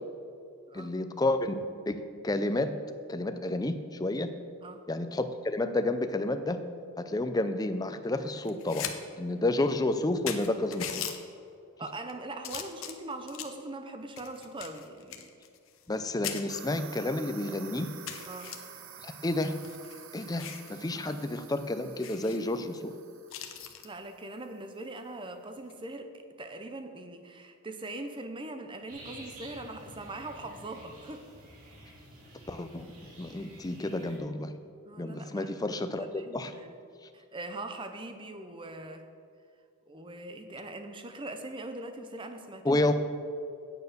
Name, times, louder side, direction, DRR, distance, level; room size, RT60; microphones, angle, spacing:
voice 1, 0.7-1.6 1.9-2.0 2.2-2.7 3.1-4.3 4.9-6.6 7.0-11.1 15.9-17.9 19.0-19.6 20.1-22.9 32.5-32.9 33.2-34.5 35.0-36.5 42.6-42.9, left 2 dB, 15° left, 9 dB, 0.4 m, -30 dB
sound 1, 8.4-8.9 9.3-9.4 9.9-10.0 10.3-11.2 11.8-12.1 12.4-13.6 14.2-16.0 16.2-16.4 17.0-17.1 17.5-17.6 18.1-18.6 19.4-20.7 21.1-21.2 21.5-21.6 22.0-22.4 23.3-23.9 25.6-25.8, left 9 dB, 65° left, 0.8 m, -39 dB
voice 2, 11.8-15.3 18.3-18.6 23.8-31.3 34.8-36.8 37.1-39.1 39.9-42.8, right 2 dB, 20° right, 7 dB, 0.7 m, -41 dB
sound 2, 16.5-24.7, right 8 dB, 60° right, 0.7 m, -50 dB
sound 3, 28.9-34.2, right 1 dB, 85° right, 2.6 m, -50 dB
9.0 x 6.9 x 6.5 m, 2.4 s
head